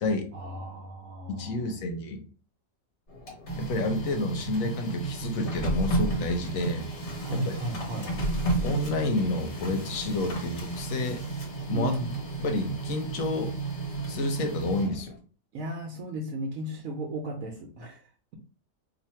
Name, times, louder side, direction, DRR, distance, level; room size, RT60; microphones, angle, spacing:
voice 1, 0.3-1.8 7.2-8.1 11.7-12.2 15.5-18.0, right 1 dB, 80° right, 0 dB, 1.1 m, -34 dB
voice 2, 1.3-2.2 3.6-6.8 7.3-7.5 8.6-11.2 11.7-11.9 12.4-13.5 14.1-15.1, left 2 dB, 80° left, 6 dB, 1.1 m, -29 dB
Printer, 3.1-15.2, right 3 dB, 55° left, 1.4 m, -32 dB
2.7 x 2.5 x 4.3 m, 0.39 s
omnidirectional pair, 1.4 m